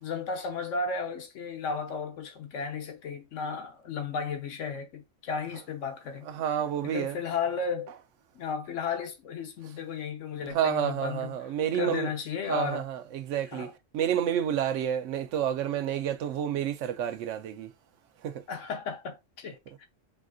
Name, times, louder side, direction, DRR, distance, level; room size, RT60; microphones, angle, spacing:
voice 1, 0.0-6.3 6.8-7.9 8.3-11.4 11.7-12.9 13.5-13.7 18.5-19.8, left 5 dB, 80° left, 1.3 m, -34 dB
voice 2, 6.3-7.2 10.5-12.1 12.5-17.7 18.2-18.4, right 9 dB, 80° right, 1.0 m, -29 dB
5.1 x 2.5 x 2.3 m
omnidirectional pair, 1.3 m